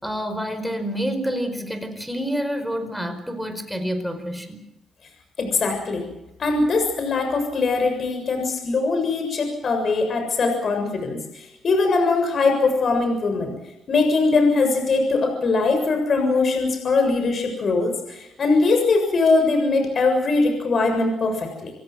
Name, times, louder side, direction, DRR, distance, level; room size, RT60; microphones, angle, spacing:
voice 1, 0.0-4.6, equal, ahead, 8 dB, 4.9 m, -28 dB
voice 2, 5.4-6.0 6.4-13.5 13.9-21.7, left 3 dB, 50° left, 5 dB, 7.0 m, -21 dB
28.0 x 16.5 x 7.9 m, 0.90 s
cardioid pair, 90°, 0 cm